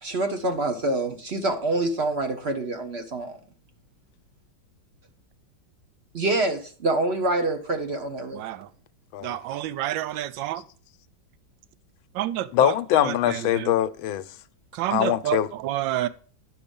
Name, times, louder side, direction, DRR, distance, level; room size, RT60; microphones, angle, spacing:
voice 1, 0.0-3.4 6.1-8.4, right 2 dB, 45° right, 1.0 m, -26 dB
voice 2, 8.3-8.7 9.2-10.6 12.2-12.7 13.0-13.1 14.8-16.1, right 13 dB, 75° right, 1.3 m, -28 dB
voice 3, 12.5-14.2 14.9-15.5, left 11 dB, 85° left, 1.4 m, -23 dB
10.0 x 6.3 x 5.3 m
omnidirectional pair, 2.1 m